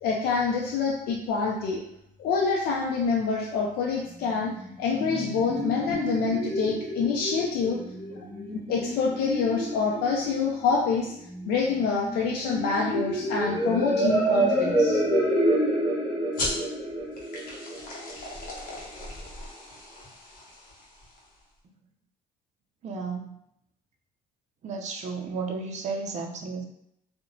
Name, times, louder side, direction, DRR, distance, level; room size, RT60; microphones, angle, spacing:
voice 1, 0.0-1.8 2.2-7.8 8.1-8.2 8.5-11.1 11.5-15.0, left 5 dB, 70° left, -2 dB, 0.4 m, -26 dB
sound 1, 4.5-18.5, right 1 dB, 15° left, 1.1 m, -28 dB
sound 2, 16.3-21.4, left 2 dB, 55° left, 0.8 m, -37 dB
voice 2, 22.8-23.4 24.6-26.7, right 4 dB, 45° right, 3 dB, 0.5 m, -33 dB
2.8 x 2.1 x 2.6 m, 0.77 s
cardioid pair, 110°, 17 cm